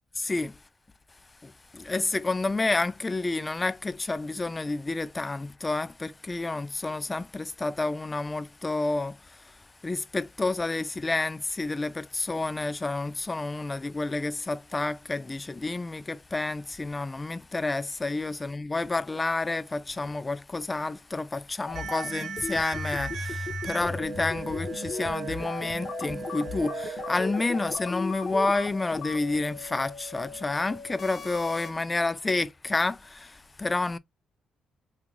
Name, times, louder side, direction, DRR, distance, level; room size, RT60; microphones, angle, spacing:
voice 1, 0.2-0.5 1.4-9.2 9.8-33.3 33.6-34.0, left 3 dB, 20° left, 0.3 m, -29 dB
sound 1, 21.7-31.7, left 4 dB, 50° left, 0.8 m, -37 dB
sound 2, 21.8-27.8, right 6 dB, 65° right, 0.5 m, -37 dB
3.7 x 2.4 x 2.9 m
cardioid pair, 90°, 0 cm